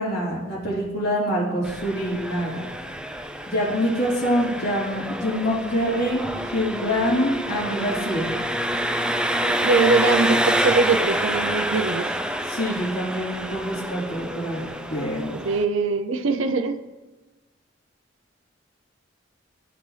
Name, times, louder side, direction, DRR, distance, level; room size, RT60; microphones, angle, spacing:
voice 1, 0.0-2.6 3.5-8.3 12.5-15.3, equal, 60° left, -9 dB, 3.0 m, -25 dB
Engine, 1.6-15.6, right 1 dB, 5° right, 0.4 m, -27 dB
voice 2, 9.5-12.1 15.4-16.7, right 4 dB, 85° right, 8 dB, 0.5 m, -22 dB
14.0 x 6.1 x 3.2 m, 1.2 s
head